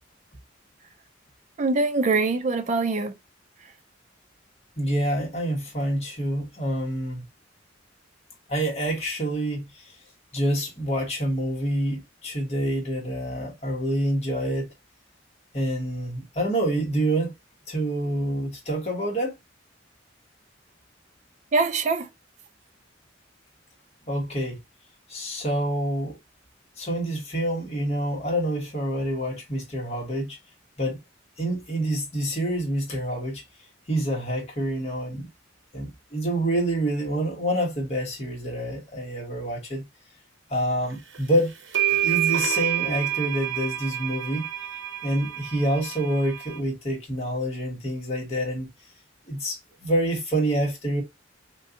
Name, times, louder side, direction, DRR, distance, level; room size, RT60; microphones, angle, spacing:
voice 1, 1.6-3.1 21.5-22.1, right 3 dB, 35° right, 0.4 m, -23 dB
voice 2, 4.8-7.3 8.5-9.9 10.3-14.7 15.5-17.3 17.7-19.4 24.1-24.6 25.1-26.2 26.8-30.4 30.8-31.0 31.4-33.4 33.9-35.3 35.7-39.8 40.5-41.5 41.9-44.5 45.0-48.7 49.3-51.0, right 1 dB, 35° left, 1.3 m, -27 dB
sound 1, 41.1-41.2 41.7-46.6, right 13 dB, 70° right, 0.7 m, -28 dB
3.7 x 2.5 x 2.7 m
head